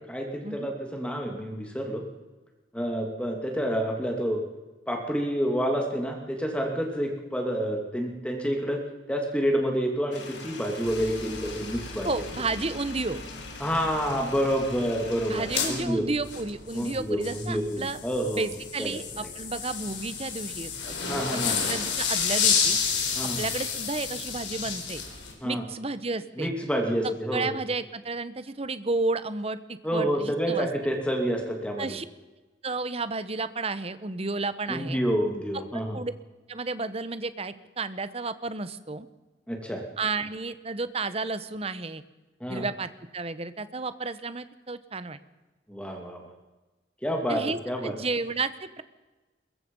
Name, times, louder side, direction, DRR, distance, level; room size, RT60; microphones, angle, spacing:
voice 1, 0.1-2.0 2.7-4.4 4.9-8.8 9.1-12.2 13.6-16.0 16.7-18.5 18.8-19.0 21.1-21.6 23.2-23.4 25.4-25.6 26.4-27.5 29.8-32.0 34.7-36.0 39.5-39.8 42.4-42.6 45.7-46.3 47.0-47.9, equal, 5° left, 2 dB, 2.5 m, -28 dB
sound 1, 10.1-15.8, left 3 dB, 75° left, 3.9 m, -42 dB
sound 2, 10.9-25.3, left 6 dB, 90° left, 4.4 m, -32 dB
voice 2, 12.0-13.2 15.3-18.0 18.3-22.8 23.4-25.0 25.4-26.5 27.0-30.7 31.8-32.0 32.6-35.0 35.9-36.1 36.5-39.1 40.0-42.0 42.5-45.2 47.3-48.8, right 3 dB, 35° right, 13 dB, 1.1 m, -32 dB
22.5 x 21.5 x 5.5 m, 1.2 s
head